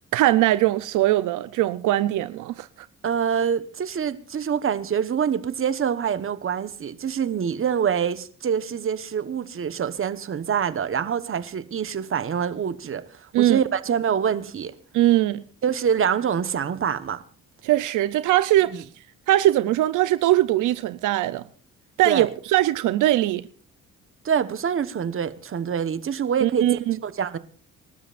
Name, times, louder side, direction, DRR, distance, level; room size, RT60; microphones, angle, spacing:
voice 1, 0.1-2.7 13.3-13.6 14.9-15.4 17.6-18.8 19.3-21.4 22.0-23.4 26.4-27.0, right 15 dB, 85° right, 0.6 m, -21 dB
voice 2, 3.0-13.0 13.4-14.7 15.6-17.2 18.6-18.8 22.0-22.3 24.2-27.4, right 7 dB, 45° right, 1.2 m, -25 dB
27.5 x 12.5 x 2.5 m
cardioid pair, 90°, 30 cm